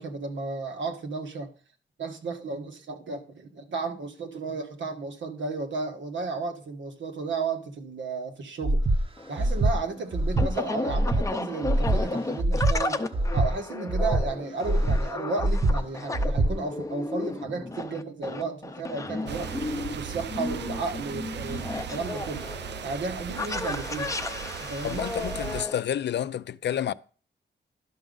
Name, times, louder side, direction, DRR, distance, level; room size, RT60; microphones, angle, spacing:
voice 1, 0.0-1.5 2.0-8.8 9.3-13.0 13.3-19.5 19.9-22.5 22.8-24.2 24.6-25.0, right 4 dB, 85° right, 1.4 m, -33 dB
Breathing, 8.6-9.0 9.4-9.7 10.1-10.5 10.9-11.2 11.6-12.0 12.4-12.7 13.1-13.5 13.9-14.2 14.6-15.0 15.4-15.7 16.1-16.5, right 1 dB, 30° right, 0.7 m, -23 dB
sound 1, 9.2-25.8, left 2 dB, 15° left, 0.5 m, -34 dB
sound 2, 19.3-25.6, right 8 dB, 70° right, 0.5 m, -37 dB
voice 2, 24.8-26.9, left 10 dB, 70° left, 0.4 m, -29 dB
11.5 x 6.2 x 3.9 m
wide cardioid pair, 150°, 19 cm